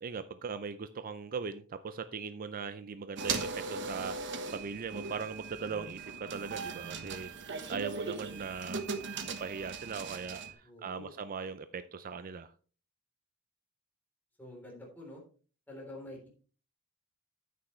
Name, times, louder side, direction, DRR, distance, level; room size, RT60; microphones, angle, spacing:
voice 1, 0.0-7.3 7.7-8.8 9.2-12.5, right 5 dB, 40° right, 12 dB, 0.5 m, -40 dB
sound 1, 3.2-10.5, right 4 dB, 55° right, 1.2 m, -39 dB
voice 2, 10.6-11.1 14.4-15.2 15.7-16.3, left 1 dB, 10° left, -2 dB, 3.4 m, -47 dB
9.6 x 8.5 x 3.2 m, 0.38 s
head